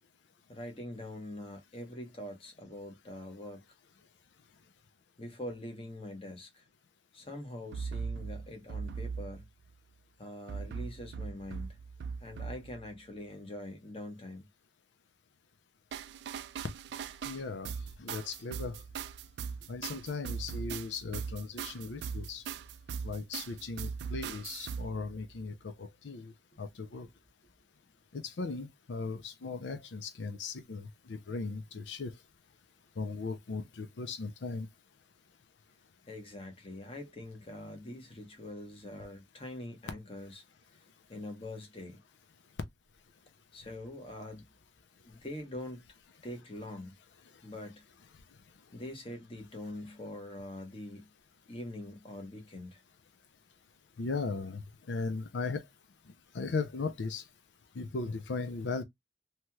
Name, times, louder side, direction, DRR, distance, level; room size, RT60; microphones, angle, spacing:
voice 1, 0.5-3.6 5.2-6.6 7.1-9.4 10.2-11.7 12.2-14.5 15.9-16.0 36.1-40.4 41.1-42.0 43.5-44.4 45.0-45.8 46.2-46.9 47.4-47.8 48.7-51.1 51.5-52.8, left 1 dB, 30° left, 1.0 m, -44 dB
sound 1, 7.7-9.7 10.5-12.9 15.9-25.4, right 6 dB, 70° right, 0.3 m, -40 dB
voice 2, 17.2-18.8 19.7-22.4 23.0-26.3 26.6-27.1 28.1-32.2 33.0-34.7 54.0-55.6 56.3-57.2 57.7-58.8, left 4 dB, 85° left, 0.5 m, -37 dB
3.1 x 2.9 x 2.2 m
head